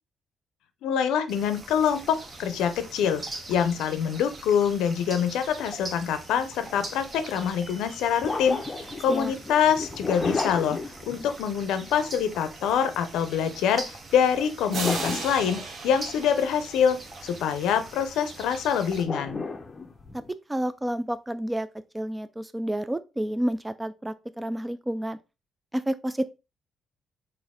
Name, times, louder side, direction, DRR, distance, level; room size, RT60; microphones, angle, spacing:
voice 1, 0.8-3.2 3.5-8.6 9.0-10.8 11.1-19.4, left 8 dB, 85° left, 0.5 m, -25 dB
sound 1, 1.3-19.0, right 2 dB, 30° right, 0.8 m, -42 dB
sound 2, 6.7-6.9 8.2-11.6 14.6-16.0 19.0-20.3, left 3 dB, 30° left, 0.6 m, -33 dB
sound 3, 14.7-17.4, right 4 dB, 60° right, 0.8 m, -36 dB
voice 2, 20.5-21.7 21.9-25.2 25.7-26.3, right 1 dB, 10° right, 0.3 m, -30 dB
4.2 x 2.6 x 3.5 m
cardioid pair, 90°, 0 cm